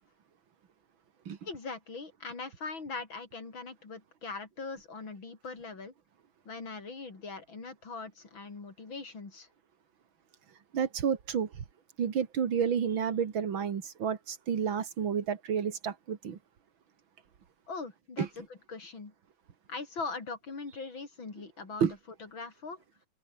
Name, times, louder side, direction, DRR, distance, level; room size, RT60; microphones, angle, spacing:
voice 1, 1.4-5.9 6.4-9.5 17.7-19.1 19.7-21.9 22.2-22.8, left 4 dB, 75° left, 4.8 m, -41 dB
voice 2, 10.7-11.6 12.0-16.4 18.2-18.3 21.8-21.9, right 7 dB, 75° right, 2.6 m, -30 dB
omnidirectional pair, 2.2 m